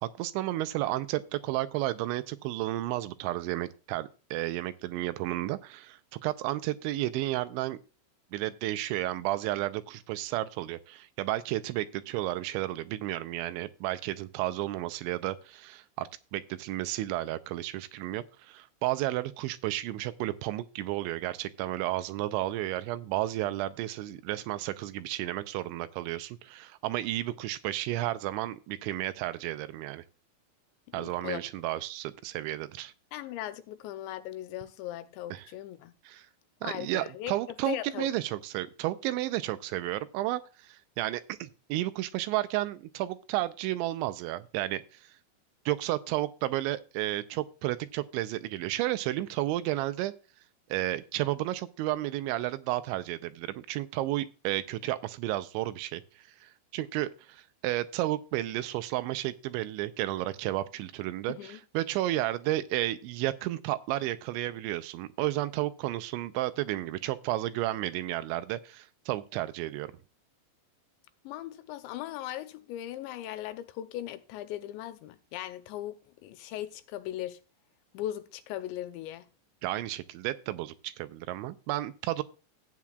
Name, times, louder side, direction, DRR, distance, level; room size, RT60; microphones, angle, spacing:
voice 1, 0.0-7.8 8.3-30.0 30.9-32.9 35.3-35.5 36.1-36.3 36.6-45.1 45.7-50.1 50.7-56.0 56.4-69.9 79.6-82.2, right 15 dB, 85° right, 2.9 m, -32 dB
voice 2, 30.9-31.4 33.1-35.9 36.6-37.3 37.7-38.1 61.3-61.6 71.2-77.4 77.9-79.3, left 13 dB, 80° left, 2.8 m, -38 dB
14.5 x 9.0 x 2.3 m
omnidirectional pair, 5.4 m